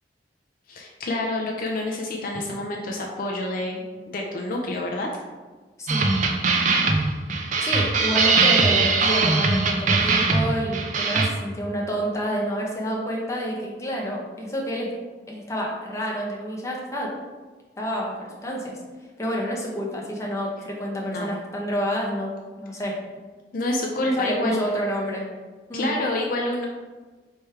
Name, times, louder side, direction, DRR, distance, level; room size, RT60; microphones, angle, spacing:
voice 1, 0.7-5.1 21.1-21.3 23.5-24.6 25.7-26.7, left 2 dB, 50° left, 0 dB, 0.4 m, -28 dB
sound 1, 5.9-11.3, right 4 dB, 45° right, 0.4 m, -21 dB
voice 2, 7.6-14.9 15.3-17.1 17.8-18.8 19.2-22.9 24.2-25.3 25.7-25.9, equal, 15° left, -3 dB, 0.8 m, -28 dB
3.4 x 3.2 x 4.4 m, 1.3 s
head